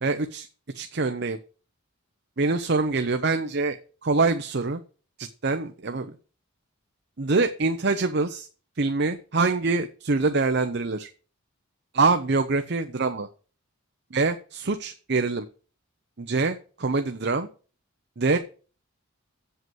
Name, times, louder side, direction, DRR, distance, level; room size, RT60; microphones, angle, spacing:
voice 1, 0.0-0.5 0.7-1.4 2.4-4.8 5.2-6.1 7.2-8.5 8.8-11.1 11.9-13.3 14.1-15.5 16.2-17.5 18.2-18.4, right 3 dB, 50° right, 8 dB, 0.7 m, -25 dB
8.0 x 7.7 x 7.7 m, 0.38 s
head